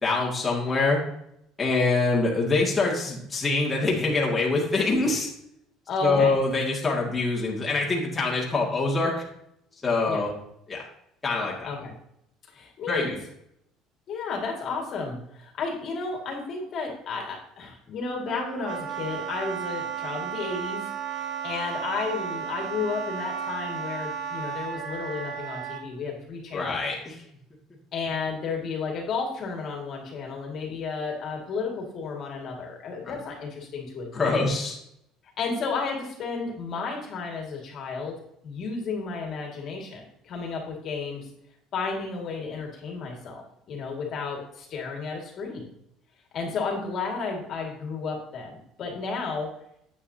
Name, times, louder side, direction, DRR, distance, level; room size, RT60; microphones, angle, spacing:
voice 1, 0.0-1.0 1.6-5.3 6.0-9.2 9.8-10.3 10.7-10.8 11.2-11.7 12.9-13.2 26.5-27.2 33.1-33.2 34.1-34.7, left 3 dB, 15° left, -4 dB, 2.0 m, -24 dB
voice 2, 5.9-6.4 10.1-10.3 11.6-11.9 12.5-13.1 14.1-20.9 21.2-26.8 27.9-34.5 35.4-38.1 38.4-41.3 41.7-45.6 46.3-49.5, left 4 dB, 45° left, 1 dB, 2.1 m, -32 dB
Wind instrument woodwind instrument, 18.3-25.8, right 8 dB, 55° right, 1.1 m, -34 dB
9.4 x 8.4 x 2.8 m, 0.76 s
cardioid pair, 145°, 0 cm